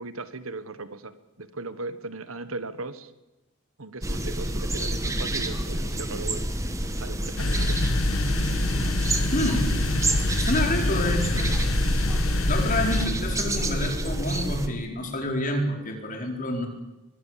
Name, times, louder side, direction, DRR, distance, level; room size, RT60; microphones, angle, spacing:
voice 1, 0.0-3.1 3.8-6.5 7.0-7.8, right 3 dB, 75° right, 13 dB, 1.5 m, -37 dB
sound 1, 4.0-14.7, right 1 dB, 15° right, 2.0 m, -28 dB
sound 2, 7.4-13.1, left 2 dB, 80° left, 1.5 m, -26 dB
voice 2, 9.3-9.7 10.4-11.6 12.5-16.7, left 1 dB, 40° left, 3 dB, 4.5 m, -28 dB
23.5 x 21.0 x 7.5 m, 0.99 s
head